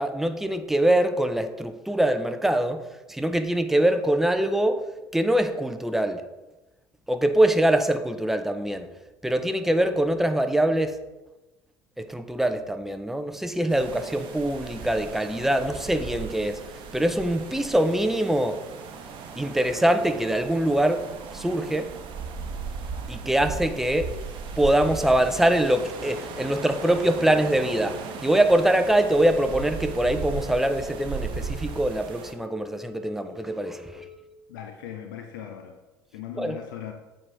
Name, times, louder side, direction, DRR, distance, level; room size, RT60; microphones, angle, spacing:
voice 1, 0.0-2.8 3.1-6.3 7.1-8.9 9.2-11.0 12.0-18.6 19.4-21.1 21.3-21.9 23.1-24.1 24.6-34.0 36.4-36.6, right 1 dB, 5° right, 0.5 m, -23 dB
sound 1, 13.7-32.3, right 5 dB, 50° right, 0.8 m, -37 dB
sound 2, 25.7-34.2, left 14 dB, 35° left, 1.2 m, -47 dB
voice 2, 34.5-35.8 36.1-36.9, left 10 dB, 65° left, 0.5 m, -38 dB
7.2 x 4.8 x 3.2 m
figure-of-eight pair, 60°, 11 cm